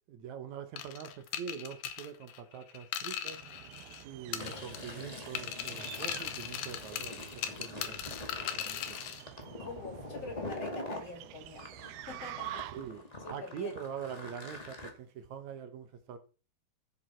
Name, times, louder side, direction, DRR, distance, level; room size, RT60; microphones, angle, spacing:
voice 1, 0.1-3.4 4.0-8.2 8.5-9.0 12.7-13.0 13.3-16.2, right 7 dB, 65° right, 2.0 m, -43 dB
sound 1, 0.8-4.0 4.3-5.0 5.4-9.2, left 10 dB, 75° left, 2.7 m, -39 dB
sound 2, 3.2-13.1, right 14 dB, 85° right, 2.6 m, -48 dB
Fill (with liquid), 4.3-11.1 11.6-14.9, left 1 dB, 20° left, 1.2 m, -44 dB
voice 2, 9.6-11.6 12.1-12.6 13.2-13.7, left 3 dB, 45° left, 3.2 m, -45 dB
15.0 x 7.0 x 4.5 m
omnidirectional pair, 4.3 m